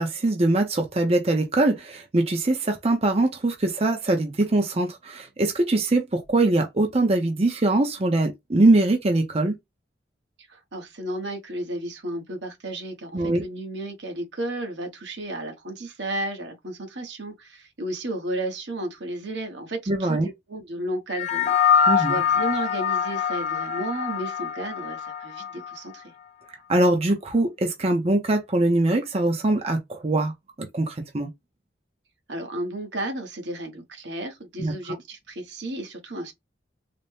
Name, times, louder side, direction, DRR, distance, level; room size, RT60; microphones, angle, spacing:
voice 1, 0.0-9.5 13.1-13.4 19.9-20.3 21.9-22.2 26.7-30.3 30.6-31.3 34.6-34.7, right 2 dB, 35° right, 0.6 m, -22 dB
voice 2, 10.5-26.1 32.3-36.3, right 1 dB, 80° right, 1.2 m, -33 dB
sound 1, 21.1-25.8, left 7 dB, 40° left, 0.4 m, -24 dB
4.0 x 2.1 x 3.3 m
head